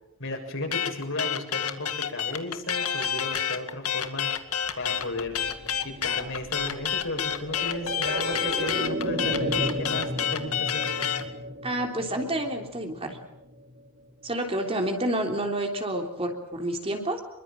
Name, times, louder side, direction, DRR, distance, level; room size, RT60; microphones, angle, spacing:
voice 1, 0.2-4.3 4.8-5.4 5.8-10.8, left 2 dB, 60° left, 2 dB, 7.1 m, -34 dB
sound 1, 0.7-11.3, left 8 dB, 90° left, 2.1 m, -28 dB
sound 2, 4.5-14.3 14.6-14.7, right 1 dB, 50° right, 4.3 m, -35 dB
voice 2, 11.6-13.2 14.2-17.2, right 1 dB, 25° right, 3 dB, 3.4 m, -29 dB
26.5 x 23.5 x 7.6 m, 0.83 s
head